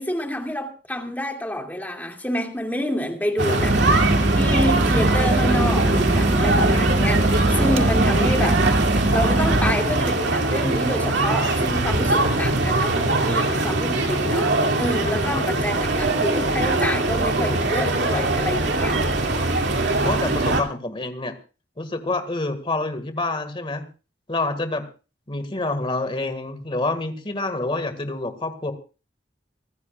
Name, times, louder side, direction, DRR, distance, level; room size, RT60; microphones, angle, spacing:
voice 1, 0.0-8.6 9.1-19.0, left 1 dB, 10° left, 2.5 m, -28 dB
sound 1, 3.4-20.6, right 2 dB, 80° right, 2.5 m, -22 dB
sound 2, 3.6-9.8, right 1 dB, 35° right, 0.9 m, -22 dB
voice 2, 15.0-15.4 15.7-15.9 19.3-19.6 20.0-21.3 21.8-23.9 24.3-24.8 25.3-28.7, left 2 dB, 30° left, 1.9 m, -28 dB
25.5 x 14.5 x 2.4 m
head